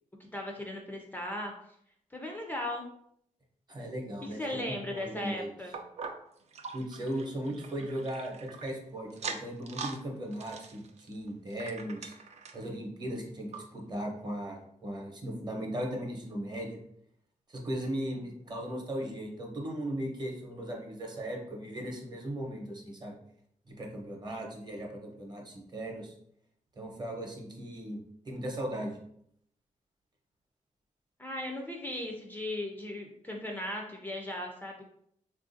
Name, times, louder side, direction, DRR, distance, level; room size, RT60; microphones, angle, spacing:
voice 1, 0.3-1.5 2.1-2.9 4.2-5.7 31.2-34.9, left 1 dB, 15° left, 0 dB, 0.4 m, -37 dB
voice 2, 3.7-5.5 6.7-12.1 12.5-16.8 17.5-23.1 23.7-26.1 26.8-28.0 28.3-29.0, right 1 dB, 35° right, 1 dB, 0.8 m, -37 dB
sound 1, 5.7-8.7 9.1-10.0 10.3-12.7 13.2-13.3 13.5-13.6 14.3-14.4, right 5 dB, 55° right, 0.4 m, -42 dB
3.4 x 2.4 x 2.5 m, 0.71 s
wide cardioid pair, 105°, 13 cm